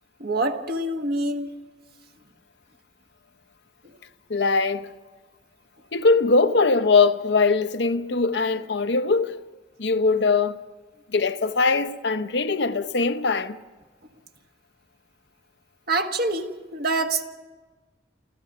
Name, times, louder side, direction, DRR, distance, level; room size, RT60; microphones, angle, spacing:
voice 1, 0.2-1.5 15.9-17.2, right 2 dB, 60° right, 1.6 m, -26 dB
voice 2, 4.3-4.9 5.9-9.4 9.8-10.6 11.1-13.6, left 4 dB, 80° left, 0.8 m, -21 dB
29.5 x 14.5 x 6.7 m
head